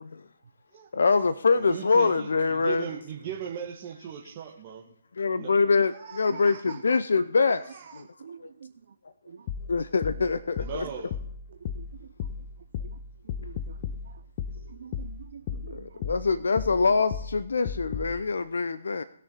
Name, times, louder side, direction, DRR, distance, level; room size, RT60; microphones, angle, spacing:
voice 1, 0.9-2.8 5.2-7.6 7.9-8.0 8.4-8.5 9.7-10.9 15.7-19.0, left 4 dB, 70° left, 0.6 m, -24 dB
voice 2, 1.5-4.8 5.3-5.5 5.9-6.8 7.7-8.0 10.6-11.1, right 8 dB, 35° right, 1.6 m, -39 dB
voice 3, 8.2-8.7 9.3-9.5 11.5-12.1 12.8-13.0 13.2-13.8 14.1-14.2 14.7-16.0, right 6 dB, 60° right, 0.6 m, -47 dB
sound 1, 9.5-18.2, left 7 dB, 35° left, 0.9 m, -36 dB
20.0 x 6.7 x 3.9 m
figure-of-eight pair, 135°, 0 cm